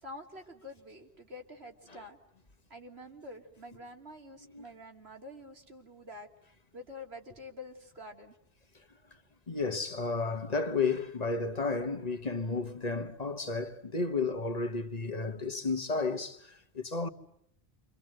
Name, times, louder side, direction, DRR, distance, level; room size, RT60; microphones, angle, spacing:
voice 1, 0.0-2.2 2.7-6.3 6.7-8.3, left 1 dB, 85° right, 3.2 m, -47 dB
voice 2, 9.5-17.1, left 4 dB, 40° left, 1.4 m, -32 dB
28.0 x 26.0 x 7.8 m
omnidirectional pair, 1.0 m